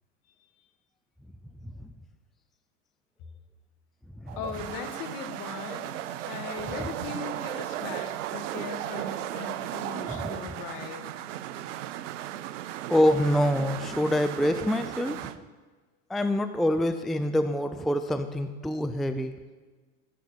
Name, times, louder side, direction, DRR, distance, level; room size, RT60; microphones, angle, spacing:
sound 1, 4.3-15.4, right 12 dB, 70° right, 0.7 m, -36 dB
voice 1, 4.4-6.0 6.3-11.1, left 6 dB, 55° left, 6 dB, 1.9 m, -39 dB
voice 2, 12.9-15.3 16.1-19.3, left 1 dB, ahead, 9 dB, 0.4 m, -26 dB
13.0 x 7.6 x 7.2 m, 1.4 s
hypercardioid pair, 85°, 38 cm